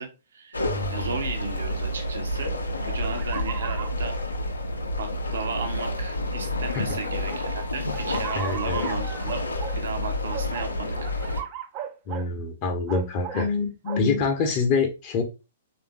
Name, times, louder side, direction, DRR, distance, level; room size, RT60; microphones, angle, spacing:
voice 1, 0.0-0.6 0.9-2.5 2.9-4.2 5.0-9.5 9.7-11.0, right 4 dB, 60° right, 6 dB, 0.7 m, -35 dB
sound 1, 0.5-11.4, left 1 dB, 80° left, 0.5 m, -29 dB
voice 2, 0.6-1.1 6.7-7.0 8.3-8.9 12.1-15.2, left 4 dB, 35° left, 3 dB, 0.6 m, -26 dB
sound 2, 3.0-3.9 4.8-4.9 5.6-5.7 7.2-9.8 10.3-12.3 12.9-13.5 13.8-14.1, right 9 dB, 35° right, 0.3 m, -37 dB
3.4 x 2.5 x 3.2 m, 0.29 s
figure-of-eight pair, 110°, 0 cm